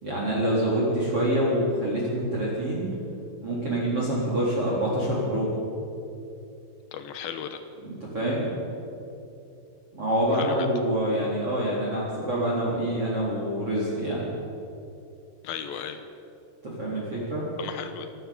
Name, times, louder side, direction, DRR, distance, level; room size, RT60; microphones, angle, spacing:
voice 1, 0.0-2.9 3.4-5.5 7.8-8.5 9.9-14.3 16.6-17.5, right 1 dB, 30° right, -5 dB, 4.3 m, -26 dB
voice 2, 6.9-7.6 10.3-10.7 15.4-16.0 17.6-18.1, left 8 dB, 85° left, 8 dB, 2.1 m, -35 dB
26.0 x 13.5 x 7.3 m, 2.8 s
omnidirectional pair, 5.8 m